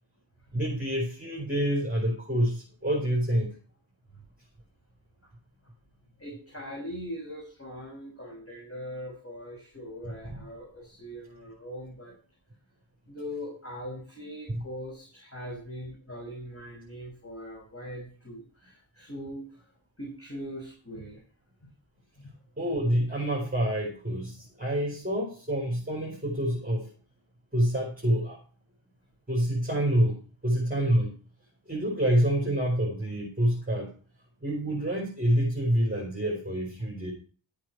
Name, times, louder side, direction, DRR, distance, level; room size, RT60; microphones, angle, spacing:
voice 1, 0.5-3.5 10.2-10.4 14.5-14.6 22.6-26.9 27.5-28.4 29.3-30.2 30.4-31.1 31.7-33.9 34.4-37.1, right 1 dB, 20° right, -3 dB, 4.7 m, -27 dB
voice 2, 6.2-12.1 13.1-19.4 20.0-21.2 21.6-21.7 22.2-22.3, equal, 30° left, -2 dB, 6.0 m, -41 dB
13.0 x 8.9 x 4.8 m, 0.40 s
wide cardioid pair, 45°, 48 cm